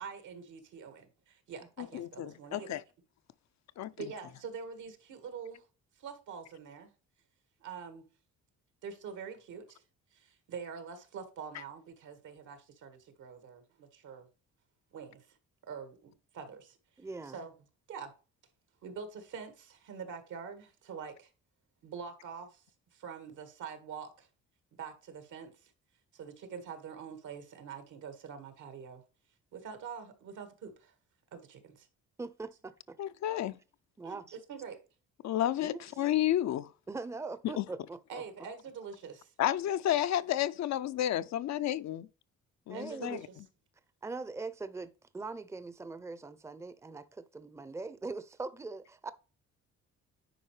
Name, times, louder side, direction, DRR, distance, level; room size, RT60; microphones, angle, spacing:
voice 1, 0.0-2.8 4.0-5.7 6.0-6.9 7.6-8.0 8.8-9.8 10.1-14.3 14.9-15.4 15.6-16.8 17.3-17.5 17.9-18.1 18.8-21.3 21.8-22.6 22.9-24.3 24.8-25.7 26.1-29.0 29.5-30.9 31.3-31.9 34.0-34.2 34.5-34.8 38.1-39.3 42.7-43.4, right 6 dB, 80° right, 1.9 m, -45 dB
voice 2, 1.8-2.8 3.8-3.9 33.0-33.6 35.2-36.7 37.6-37.7 39.4-42.1 42.7-43.2, left 12 dB, 65° left, 0.6 m, -31 dB
voice 3, 17.0-17.4 32.2-33.0 34.0-34.4 35.6-35.8 36.9-38.2 42.7-43.2 44.0-49.1, right 3 dB, 10° right, 0.6 m, -42 dB
10.0 x 4.7 x 3.3 m
cardioid pair, 90°, 30 cm